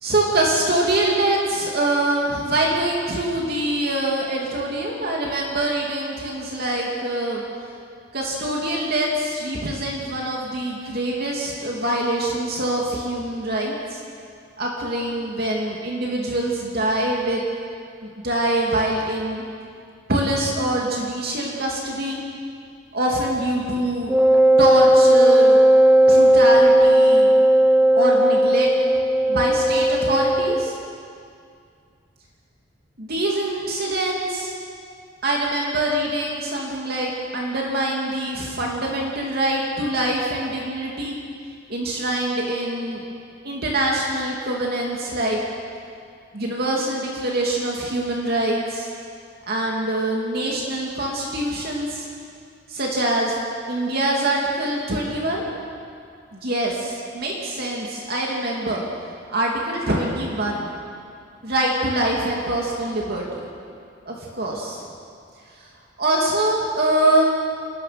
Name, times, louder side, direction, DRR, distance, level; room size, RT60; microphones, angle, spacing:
voice 1, 0.0-7.4 8.1-14.0 14.6-17.4 18.0-19.4 20.1-22.2 22.9-24.1 24.6-25.6 26.1-27.3 28.0-28.7 29.3-30.8 33.0-34.5 35.2-41.2 41.7-43.0 43.4-45.4 46.3-48.9 49.5-52.1 52.7-53.4 53.7-55.4 56.3-58.8 59.3-60.7 61.4-63.2 64.1-64.8 65.6-65.7 66.0-67.2, right 1 dB, 50° right, -2 dB, 2.7 m, -24 dB
Wind instrument woodwind instrument, 24.1-30.7, right 1 dB, 10° right, 0.8 m, -15 dB
27.5 x 20.0 x 6.0 m, 2.4 s
head